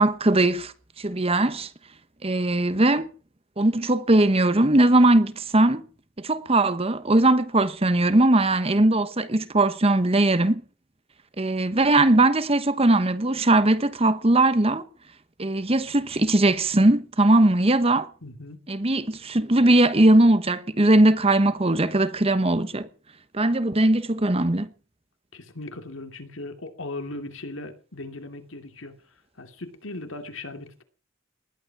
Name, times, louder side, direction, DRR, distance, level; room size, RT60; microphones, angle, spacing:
voice 1, 0.0-1.7 2.2-3.1 3.6-5.8 6.2-10.6 11.4-14.8 15.4-18.1 18.7-22.9 23.3-24.7, right 2 dB, 30° right, 1.1 m, -20 dB
voice 2, 18.2-18.6 25.3-28.9 29.4-30.8, left 2 dB, 70° left, 2.7 m, -38 dB
20.0 x 12.0 x 6.0 m
head